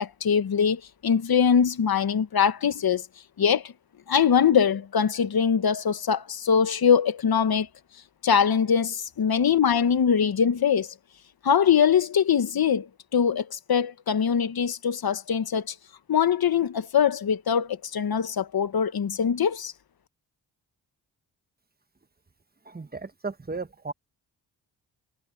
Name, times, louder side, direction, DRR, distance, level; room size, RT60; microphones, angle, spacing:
voice 1, 0.0-3.0 3.4-3.6 4.1-7.7 8.2-10.9 11.4-15.7 16.1-19.7, left 7 dB, 60° left, 1.4 m, -22 dB
voice 2, 22.7-23.9, right 3 dB, 20° right, 1.4 m, -35 dB
cardioid pair, 55°, 42 cm